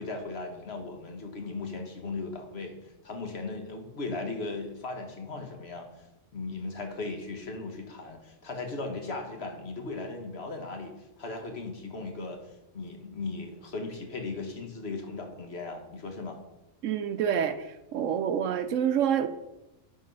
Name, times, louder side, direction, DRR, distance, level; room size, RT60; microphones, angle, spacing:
voice 1, 0.0-6.1 6.3-16.4, left 3 dB, 55° left, 3 dB, 1.4 m, -37 dB
voice 2, 16.8-17.7 17.9-19.3, right 8 dB, 75° right, 10 dB, 1.0 m, -27 dB
10.5 x 3.9 x 5.3 m, 0.95 s
omnidirectional pair, 1.4 m